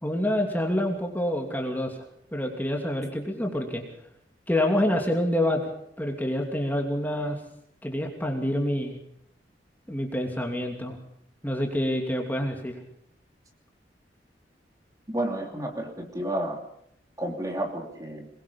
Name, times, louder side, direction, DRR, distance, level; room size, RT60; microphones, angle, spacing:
voice 1, 0.0-2.0 2.3-3.8 4.5-5.7 6.0-7.4 7.8-9.0 9.9-11.0 11.4-12.7, left 1 dB, 10° left, 2 dB, 2.8 m, -27 dB
voice 2, 15.1-16.6 17.2-18.3, right 1 dB, 20° right, 2 dB, 2.9 m, -31 dB
23.5 x 21.5 x 5.5 m, 0.71 s
head